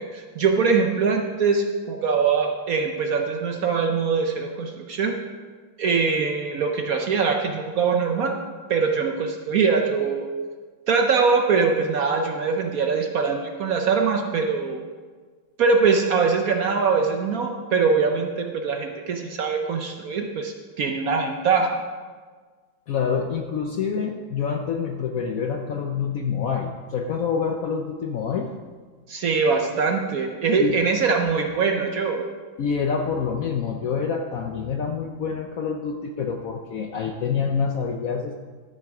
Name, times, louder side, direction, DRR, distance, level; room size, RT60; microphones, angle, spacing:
voice 1, 0.0-5.2 5.8-8.3 8.7-10.3 10.9-14.8 15.6-21.8 29.1-32.3, right 5 dB, 60° right, 3 dB, 1.0 m, -22 dB
voice 2, 22.9-28.5 30.5-30.8 32.6-38.4, left 6 dB, 65° left, 3 dB, 0.9 m, -27 dB
12.0 x 6.6 x 4.8 m, 1.5 s
omnidirectional pair, 2.1 m